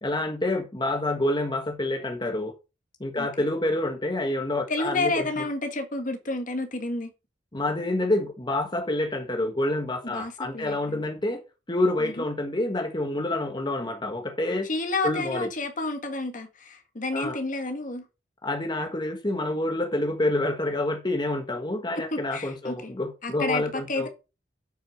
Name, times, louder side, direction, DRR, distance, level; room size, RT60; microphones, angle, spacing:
voice 1, 0.0-2.5 3.0-5.4 7.5-11.4 11.7-14.7 15.0-15.5 17.1-17.4 18.4-24.1, left 1 dB, 25° left, 1.5 m, -28 dB
voice 2, 4.7-7.1 10.0-11.0 12.0-12.2 14.7-18.0 21.9-22.9 23.2-24.1, left 2 dB, 45° left, 1.7 m, -30 dB
7.9 x 6.4 x 5.3 m
head